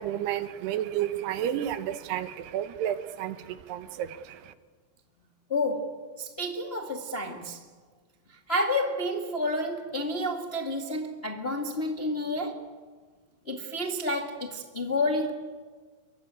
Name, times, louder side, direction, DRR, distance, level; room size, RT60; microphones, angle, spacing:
voice 1, 0.0-4.5, right 11 dB, 80° right, 3.2 m, -31 dB
voice 2, 5.5-7.6 8.3-12.7 13.4-15.3, left 1 dB, 35° left, 1.0 m, -30 dB
28.5 x 23.5 x 8.9 m
omnidirectional pair, 4.7 m